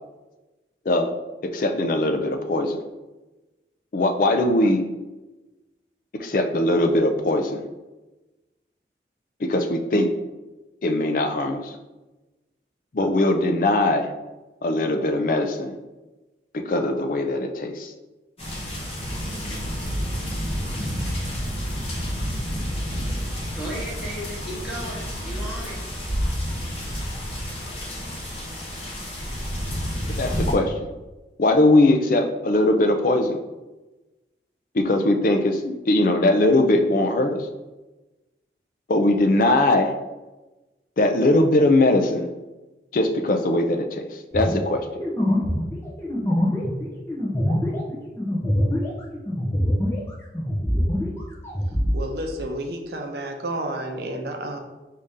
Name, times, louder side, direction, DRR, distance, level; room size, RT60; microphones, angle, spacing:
voice 1, 1.4-2.8 3.9-4.9 6.2-7.7 9.4-10.1 10.8-11.7 12.9-14.1 14.6-15.8 16.5-17.9 30.2-30.7 31.4-33.4 34.7-37.5 38.9-39.9 41.0-42.3 42.9-44.0 44.3-44.8, left 1 dB, 50° left, 6 dB, 0.4 m, -20 dB
sound 1, 18.4-30.5, equal, 35° left, 1.1 m, -29 dB
voice 2, 23.5-25.8, right 1 dB, 5° right, -8 dB, 1.2 m, -35 dB
sound 2, 44.3-50.1 50.3-52.0, equal, 15° left, 0.8 m, -24 dB
voice 3, 51.9-54.6, right 1 dB, 65° right, 3 dB, 0.6 m, -30 dB
5.0 x 2.8 x 3.6 m, 1.1 s
head